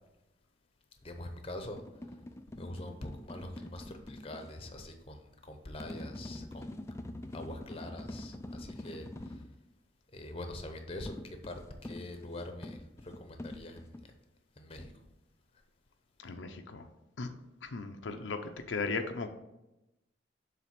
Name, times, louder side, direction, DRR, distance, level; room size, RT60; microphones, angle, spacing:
voice 1, 1.0-1.8 2.6-6.7 7.3-9.4 10.1-14.0 14.6-14.9, left 1 dB, 30° left, 6 dB, 0.8 m, -44 dB
sound 1, 1.6-4.5 5.8-9.5 11.1-14.0, left 1 dB, 15° left, 0.4 m, -45 dB
voice 2, 16.2-16.9 17.2-17.3 17.6-19.3, left 4 dB, 85° left, 5 dB, 0.6 m, -37 dB
7.4 x 3.4 x 5.8 m, 0.93 s
head